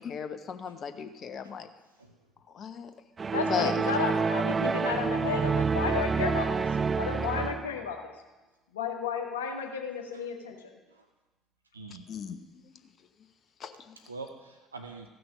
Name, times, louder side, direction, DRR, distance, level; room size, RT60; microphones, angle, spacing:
voice 1, 0.0-1.7 2.5-2.9 3.5-3.8 12.1-12.7 13.6-14.0, left 7 dB, 45° left, 9 dB, 0.9 m, -36 dB
sound 1, 3.2-7.8, right 5 dB, 30° right, 0.3 m, -28 dB
voice 2, 3.3-6.6 6.9-8.1 8.7-10.7, left 6 dB, 75° left, 3 dB, 1.2 m, -33 dB
voice 3, 11.7-12.0 14.0-15.1, right 3 dB, 85° right, 5 dB, 0.6 m, -44 dB
15.0 x 6.1 x 6.4 m, 1.1 s
figure-of-eight pair, 55°, 0 cm